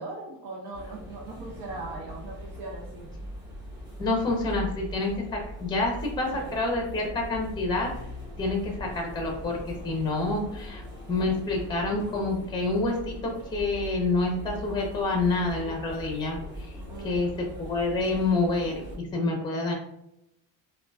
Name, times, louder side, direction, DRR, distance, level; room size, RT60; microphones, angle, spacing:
voice 1, 0.0-3.1 6.3-6.5 16.9-17.4, right 2 dB, 60° right, -3 dB, 0.8 m, -39 dB
sound 1, 0.7-19.0, left 1 dB, 10° right, 1.3 m, -40 dB
voice 2, 4.0-7.9 8.4-10.8 11.1-16.7 17.0-17.3 17.6-19.7, left 2 dB, 10° left, 1 dB, 0.7 m, -28 dB
3.7 x 2.3 x 2.3 m, 0.81 s
cardioid pair, 110°, 43 cm